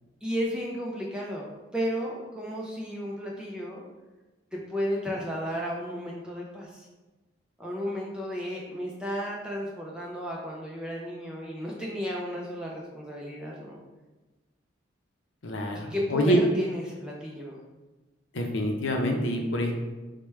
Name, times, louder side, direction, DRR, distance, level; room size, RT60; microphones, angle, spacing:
voice 1, 0.2-3.8 4.5-6.9 7.6-13.8 15.7-17.6, equal, 5° right, -3 dB, 0.4 m, -33 dB
voice 2, 15.4-16.4 18.3-19.7, equal, 75° left, 2 dB, 0.6 m, -26 dB
4.6 x 2.2 x 3.2 m, 1.2 s
head